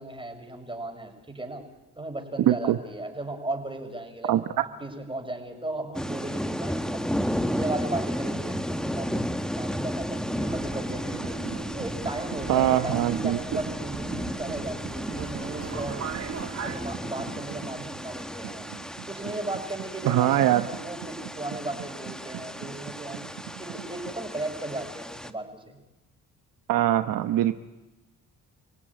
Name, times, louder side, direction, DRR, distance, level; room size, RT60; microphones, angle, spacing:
voice 1, 0.0-1.7 2.0-4.3 4.8-11.2 11.7-16.1 16.6-18.7 19.1-23.3 23.6-25.8, right 2 dB, 15° right, 4 dB, 6.4 m, -36 dB
voice 2, 2.5-2.8 4.3-4.4 12.5-13.4 20.0-20.6 26.7-27.5, right 13 dB, 70° right, 10 dB, 1.1 m, -22 dB
sound 1, 5.9-25.3, equal, ahead, 1.4 m, -33 dB
sound 2, 10.1-24.2, right 12 dB, 90° right, 1.5 m, -44 dB
Subway metro underground, 10.4-16.9, right 7 dB, 50° right, 2.6 m, -39 dB
29.0 x 17.5 x 10.0 m, 1.1 s
supercardioid pair, 75°, 34 cm